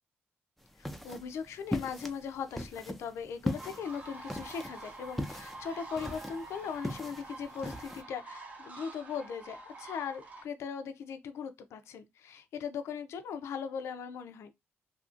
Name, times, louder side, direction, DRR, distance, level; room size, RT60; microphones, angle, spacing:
sound 1, 0.6-8.0, left 1 dB, 5° left, 0.4 m, -39 dB
voice 1, 0.8-14.5, left 6 dB, 80° left, 0.4 m, -39 dB
sound 2, 3.4-10.4, right 2 dB, 30° right, 0.7 m, -47 dB
2.7 x 2.4 x 2.5 m
cardioid pair, 105°, 5 cm